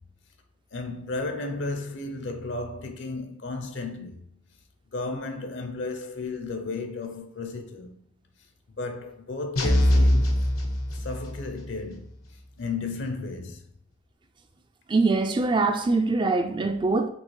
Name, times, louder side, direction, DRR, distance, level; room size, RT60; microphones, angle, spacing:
voice 1, 0.7-4.2 4.9-8.0 8.8-10.5 10.9-12.1 12.6-13.6, left 3 dB, 60° left, 0.5 m, -34 dB
sound 1, 9.6-11.5, left 1 dB, 90° left, 0.9 m, -22 dB
voice 2, 14.9-17.1, right 3 dB, 20° right, 0.3 m, -23 dB
5.3 x 3.2 x 3.2 m
head